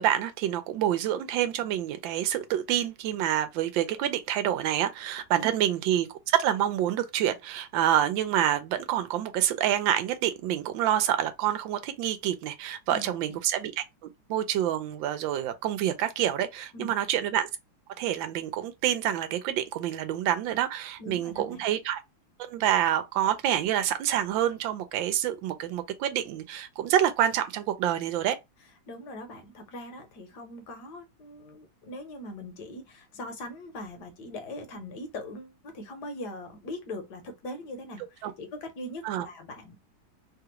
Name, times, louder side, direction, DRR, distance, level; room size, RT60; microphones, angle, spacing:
voice 1, 0.0-13.8 14.3-17.5 18.0-22.0 22.4-28.4 38.2-38.3 39.0-39.3, right 11 dB, 80° right, 1.3 m, -27 dB
voice 2, 12.9-13.4 16.7-16.9 21.0-21.6 28.9-39.8, left 1 dB, 65° left, 1.3 m, -41 dB
3.3 x 2.4 x 2.8 m
omnidirectional pair, 2.1 m